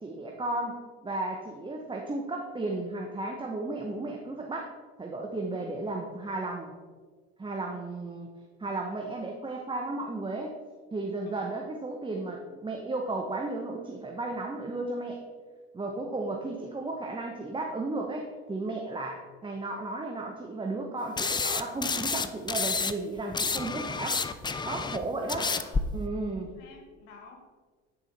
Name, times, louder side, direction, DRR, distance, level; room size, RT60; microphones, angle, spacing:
voice 1, 0.0-4.7 5.0-6.7 7.4-8.3 8.6-10.5 10.9-15.2 15.7-24.2 24.6-25.5 25.9-26.5, right 2 dB, 15° right, 1 dB, 0.9 m, -34 dB
sound 1, 21.2-22.9 23.2-25.8, left 4 dB, 15° left, 0.4 m, -29 dB
voice 2, 25.2-25.8 26.3-27.4, left 4 dB, 80° left, 3 dB, 1.7 m, -50 dB
9.7 x 4.9 x 4.1 m, 1.5 s
supercardioid pair, 80°, 32 cm